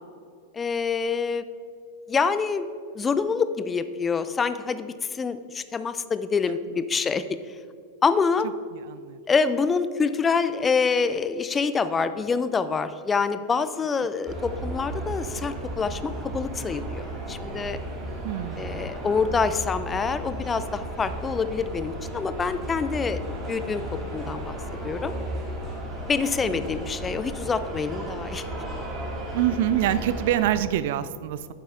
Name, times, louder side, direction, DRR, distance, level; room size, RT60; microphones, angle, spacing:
voice 1, 0.5-1.4 2.1-2.7 3.0-7.4 8.0-8.5 9.3-17.8 18.6-23.2 23.5-23.8 24.1-24.6 24.8-25.1 26.1-28.4, left 5 dB, 20° left, 12 dB, 0.4 m, -26 dB
voice 2, 8.7-9.2 18.2-18.9 26.4-26.6 29.3-31.5, right 12 dB, 50° right, 15 dB, 0.3 m, -26 dB
sound 1, 14.3-30.6, right 1 dB, 20° right, 2.2 m, -34 dB
9.6 x 7.3 x 3.6 m, 2.3 s
figure-of-eight pair, 90°, 0 cm